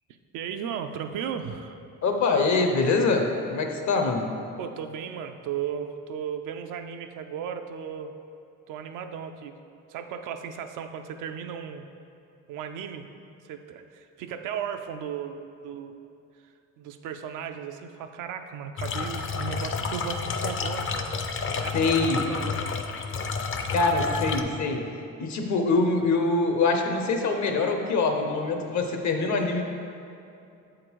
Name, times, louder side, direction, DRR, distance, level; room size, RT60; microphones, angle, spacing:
voice 1, 0.3-1.8 4.6-8.2 8.7-9.6 9.9-11.9 12.5-13.1 13.4-16.0 16.8-21.1 21.5-21.8 22.3-22.7, right 8 dB, 90° right, 7 dB, 0.5 m, -35 dB
voice 2, 2.0-4.3 21.7-22.2 23.7-29.6, left 3 dB, 65° left, 4 dB, 0.9 m, -24 dB
sound 1, 18.8-24.4, left 4 dB, 45° left, 0.5 m, -30 dB
7.6 x 3.8 x 4.6 m, 2.6 s
cardioid pair, 90°, 30 cm